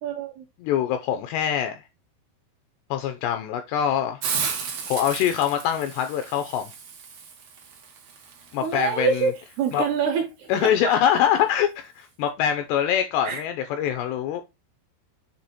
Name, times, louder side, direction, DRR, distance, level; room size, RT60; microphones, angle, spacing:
voice 1, 0.0-0.4 8.6-10.7 13.3-13.4, right 6 dB, 75° right, 2.6 m, -26 dB
voice 2, 0.6-1.8 2.9-4.2 4.9-6.7 8.5-9.3 9.7-9.8 10.5-14.4, left 9 dB, 85° left, 2.5 m, -24 dB
Hiss, 4.2-9.8, right 6 dB, 90° right, 1.4 m, -34 dB
7.7 x 3.3 x 4.1 m
omnidirectional pair, 5.5 m